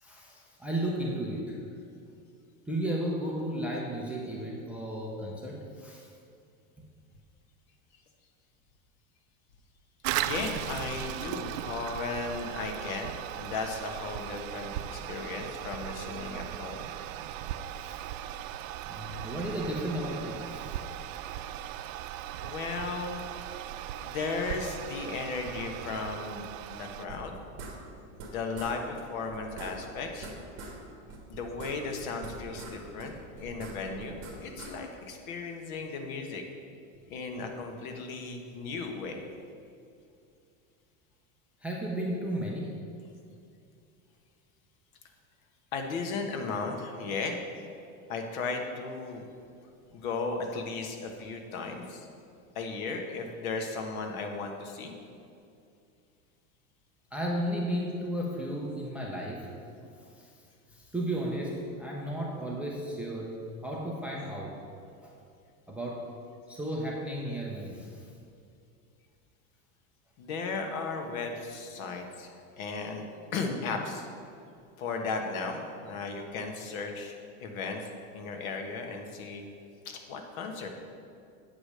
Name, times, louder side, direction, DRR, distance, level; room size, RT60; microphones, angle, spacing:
voice 1, 0.0-1.6 2.7-6.1 17.8-18.0 18.9-20.7 21.1-21.2 41.6-42.7 57.1-59.5 60.1-60.3 60.7-63.4 63.6-64.6 65.0-65.1 65.7-66.1 66.5-68.1, right 1 dB, 5° right, -3 dB, 0.4 m, -34 dB
Toilet flush, 10.0-27.1, right 12 dB, 70° right, 0.5 m, -38 dB
voice 2, 10.2-16.9 22.4-23.2 24.0-27.3 28.2-30.3 31.3-36.4 37.1-39.2 45.7-47.4 48.1-49.3 49.9-52.1 52.5-54.9 70.2-73.0 73.3-74.1 74.8-77.1 77.4-79.4 79.8-80.7, left 4 dB, 75° left, 4 dB, 1.4 m, -35 dB
sound 1, 27.1-28.3 28.5-28.7 29.0-29.1 29.3-30.8 31.1-32.7 33.0-34.7, right 3 dB, 35° right, 1.7 m, -43 dB
8.4 x 5.0 x 6.6 m, 2.5 s
supercardioid pair, 165°, 41 cm